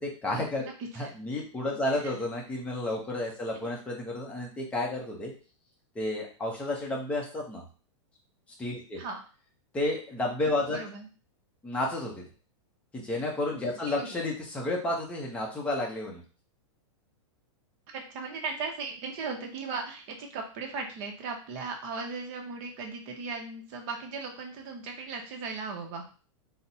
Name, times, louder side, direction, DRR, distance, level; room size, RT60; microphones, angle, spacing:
voice 1, 0.0-0.7 1.0-5.3 5.9-7.6 8.6-9.0 9.7-10.8 11.6-12.2 12.9-16.2, left 2 dB, 5° left, -1 dB, 0.6 m, -31 dB
voice 2, 0.6-1.1 2.0-2.1 9.0-9.2 10.7-11.1 14.0-14.2 17.9-26.0, right 4 dB, 35° right, 3 dB, 0.7 m, -37 dB
3.9 x 2.0 x 2.7 m, 0.38 s
supercardioid pair, 155°, 16 cm